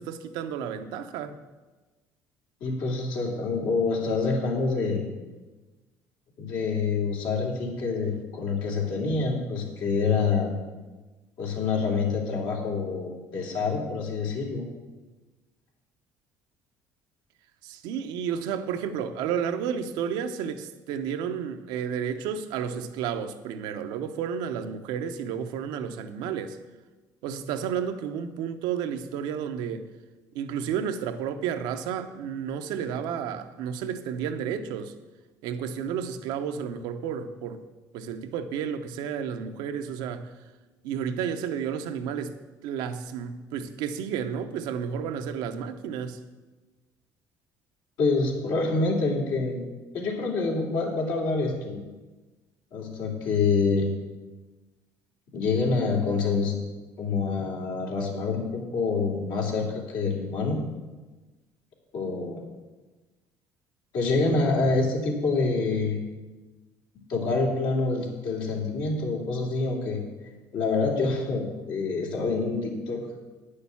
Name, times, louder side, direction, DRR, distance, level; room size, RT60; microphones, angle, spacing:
voice 1, 0.0-1.4 17.6-26.6 27.2-29.9 30.3-34.9 35.4-37.6 37.9-40.3 40.8-42.4 42.6-46.2, right 8 dB, 85° right, 8 dB, 0.8 m, -31 dB
voice 2, 2.6-5.0 6.4-10.5 11.4-14.7 48.0-49.6 49.9-51.8 52.7-53.9 55.3-56.6 57.0-60.6 61.9-62.4 63.9-66.0 67.1-70.0 70.5-73.0, left 4 dB, 75° left, -1 dB, 2.8 m, -26 dB
9.4 x 6.7 x 7.1 m, 1.2 s
cardioid pair, 90°, 7 cm